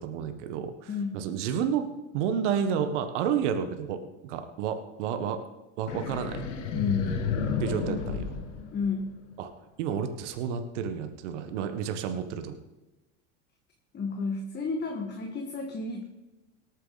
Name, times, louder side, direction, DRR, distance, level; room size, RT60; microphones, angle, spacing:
voice 1, 0.0-1.8 2.1-5.4 5.8-6.5 7.6-8.3 9.4-9.5 9.8-12.6, right 8 dB, 80° right, 8 dB, 1.4 m, -30 dB
voice 2, 0.9-1.2 6.7-7.2 8.7-9.1 13.9-16.0, left 4 dB, 30° left, 2 dB, 1.6 m, -31 dB
sound 1, 5.9-9.3, left 6 dB, 90° left, 1.9 m, -31 dB
18.0 x 9.1 x 4.0 m, 1.0 s
supercardioid pair, 110°, 35 cm